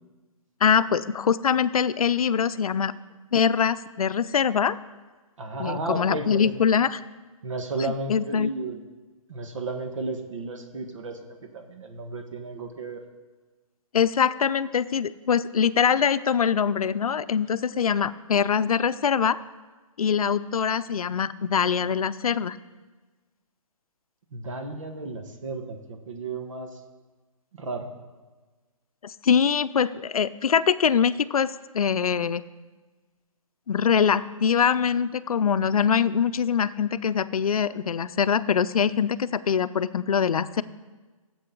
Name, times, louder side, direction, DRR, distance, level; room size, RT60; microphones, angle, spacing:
voice 1, 0.6-2.9 3.3-4.8 5.6-7.0 7.8-8.5 13.9-19.4 20.0-22.6 29.0-32.5 33.7-40.6, left 7 dB, 85° left, 15 dB, 0.5 m, -23 dB
voice 2, 5.4-6.7 7.4-8.8 9.3-13.0 24.3-26.8 27.5-27.9, right 3 dB, 60° right, 5 dB, 1.4 m, -33 dB
15.0 x 7.7 x 3.9 m, 1.3 s
hypercardioid pair, 160°, 18 cm